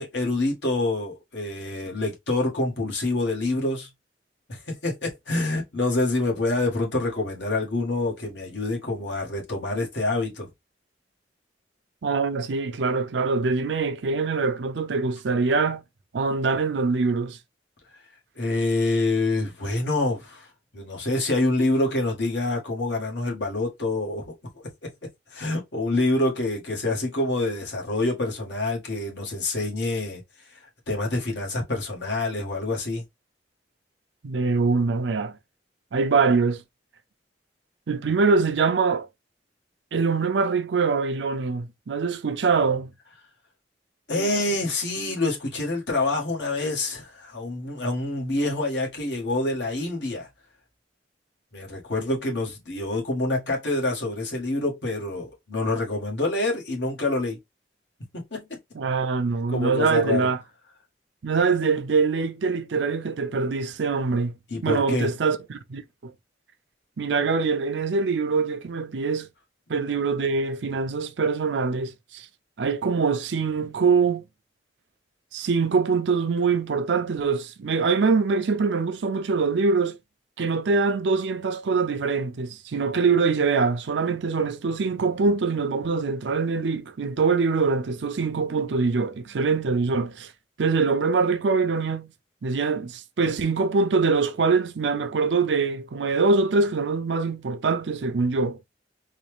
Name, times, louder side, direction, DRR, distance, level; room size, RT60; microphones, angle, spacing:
voice 1, 0.0-3.9 4.5-10.5 18.3-24.9 25.3-33.0 44.1-50.3 51.5-57.4 58.1-58.6 59.5-60.3 64.5-65.1, left 2 dB, 75° left, 1.6 m, -27 dB
voice 2, 12.0-15.8 16.1-17.4 34.2-35.3 35.9-36.6 37.9-39.1 39.9-42.9 58.8-60.4 61.2-64.4 64.6-66.1 67.0-69.3 69.7-72.3 72.6-74.2 75.3-80.0 80.4-90.3 90.6-92.1 92.4-98.6, right 4 dB, 80° right, 0.5 m, -24 dB
4.0 x 2.4 x 3.2 m
head